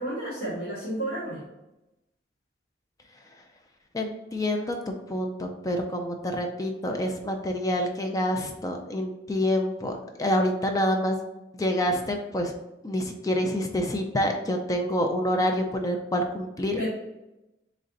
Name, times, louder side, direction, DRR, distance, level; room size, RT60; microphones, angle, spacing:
voice 1, 0.0-1.4 16.8-16.9, right 1 dB, 65° left, -10 dB, 1.5 m, -31 dB
voice 2, 3.9-11.2 11.5-12.5 12.8-16.9, equal, 20° left, 3 dB, 0.4 m, -27 dB
3.9 x 3.2 x 3.9 m, 0.96 s
head